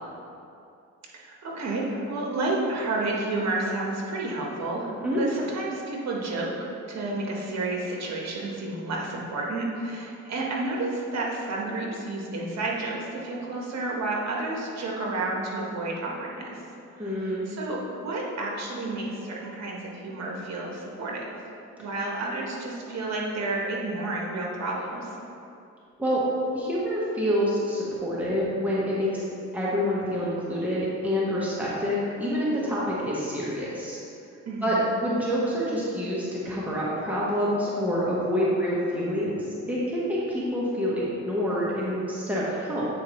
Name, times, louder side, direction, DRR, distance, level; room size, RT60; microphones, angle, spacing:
voice 1, 1.1-16.6 17.0-21.4 21.8-25.1 34.4-34.7, right 2 dB, 60° right, -2 dB, 1.4 m, -31 dB
voice 2, 17.0-17.4 26.0-26.2 26.5-29.2 29.5-34.0 34.6-42.8, equal, 5° right, -7 dB, 1.3 m, -27 dB
8.4 x 4.5 x 3.1 m, 2.6 s
cardioid pair, 90°, 30 cm